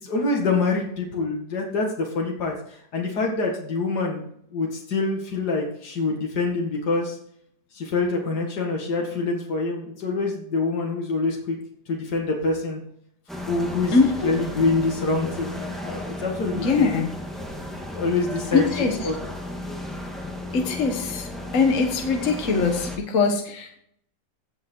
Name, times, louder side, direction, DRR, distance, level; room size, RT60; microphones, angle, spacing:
voice 1, 0.0-7.2 7.7-11.6 11.9-12.8 13.4-14.0 14.2-17.0 17.9-19.2, left 3 dB, 75° left, 0 dB, 2.6 m, -26 dB
sound 1, 13.3-23.0, left 1 dB, ahead, 1.8 m, -34 dB
voice 2, 13.9-14.3 16.5-17.1 18.5-18.9 20.5-21.3 21.5-23.8, left 4 dB, 50° left, 3 dB, 1.6 m, -22 dB
17.0 x 5.8 x 4.6 m, 0.68 s
omnidirectional pair, 1.8 m